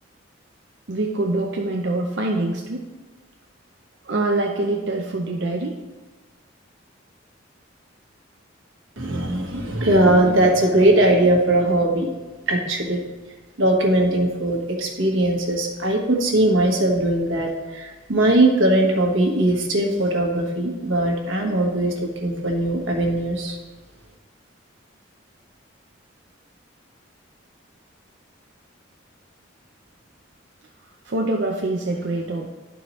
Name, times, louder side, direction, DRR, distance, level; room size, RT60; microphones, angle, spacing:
voice 1, 0.9-2.9 4.0-5.8 31.0-32.5, right 2 dB, 60° right, 0 dB, 0.6 m, -24 dB
voice 2, 9.0-12.1 12.5-13.0 13.6-23.6, right 1 dB, 80° right, 1 dB, 1.3 m, -20 dB
11.5 x 4.6 x 3.1 m, 1.2 s
head